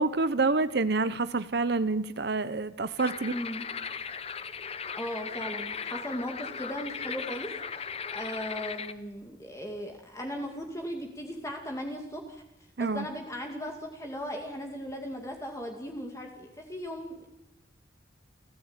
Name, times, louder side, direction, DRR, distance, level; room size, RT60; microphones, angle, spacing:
voice 1, 0.0-3.3 12.8-13.1, right 3 dB, 60° right, 14 dB, 0.8 m, -27 dB
sound 1, 3.0-8.9, left 6 dB, 35° left, 0.8 m, -37 dB
voice 2, 3.3-3.6 5.0-7.5 8.1-12.4 12.8-17.3, equal, 15° left, 2 dB, 2.3 m, -37 dB
29.0 x 15.5 x 8.9 m, 0.91 s
head